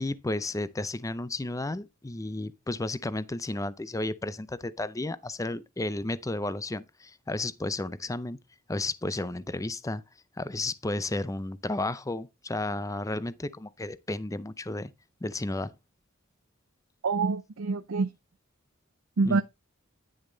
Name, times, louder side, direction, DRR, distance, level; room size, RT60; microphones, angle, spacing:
voice 1, 0.0-8.4 8.7-10.0 10.4-14.9 15.2-15.7 19.2-19.4, left 2 dB, 15° left, 0.5 m, -33 dB
voice 2, 17.0-18.1 19.2-19.4, right 4 dB, 75° right, 0.6 m, -26 dB
10.5 x 6.5 x 3.9 m
head